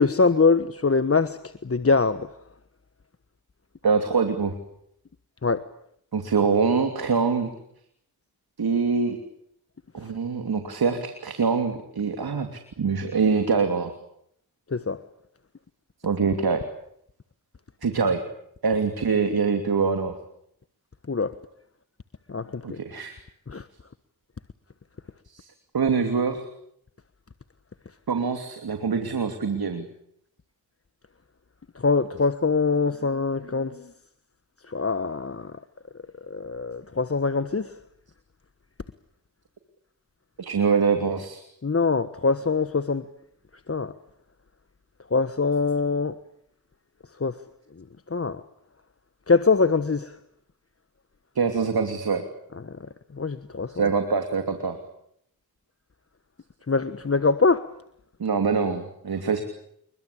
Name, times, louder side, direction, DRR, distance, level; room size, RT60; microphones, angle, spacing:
voice 1, 0.0-2.3 5.4-5.6 10.0-10.1 14.7-15.0 21.1-21.3 22.3-22.8 23.5-23.7 31.7-33.9 34.7-35.6 36.2-37.8 41.6-43.1 43.7-43.9 45.1-46.2 47.2-47.4 47.8-48.4 49.3-50.2 52.6-53.9 56.7-57.7, left 4 dB, 35° left, 1.3 m, -24 dB
voice 2, 3.8-4.5 6.1-7.5 8.6-9.2 9.9-13.9 16.0-16.6 17.8-18.2 18.6-20.1 22.6-23.2 25.3-25.5 25.7-26.4 28.1-29.9 40.4-41.4 51.3-52.2 53.7-54.8 58.2-59.4, right 5 dB, 70° right, 3.0 m, -24 dB
27.5 x 22.5 x 8.6 m
cardioid pair, 45°, 38 cm